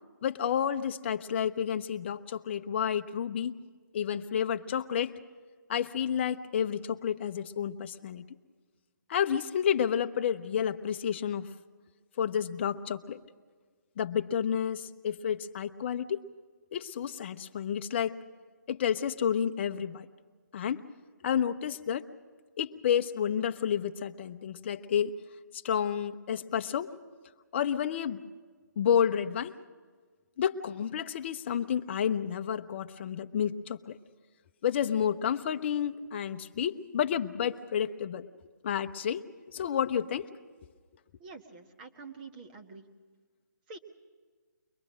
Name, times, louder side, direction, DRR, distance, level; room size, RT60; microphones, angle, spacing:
voice 1, 0.2-3.5 3.9-5.1 5.7-8.3 9.1-11.5 12.2-13.2 14.0-16.2 16.7-18.2 18.7-20.1 20.5-20.8 21.2-22.1 22.6-25.2 25.5-26.9 27.5-28.2 28.8-29.5 30.4-34.0 34.6-38.3 38.6-40.3, left 8 dB, 35° left, 9 dB, 0.8 m, -30 dB
voice 2, 41.2-42.9 43.7-43.8, right 4 dB, 30° right, 4 dB, 1.5 m, -47 dB
23.0 x 21.0 x 6.3 m, 1.5 s
figure-of-eight pair, 150°, 10 cm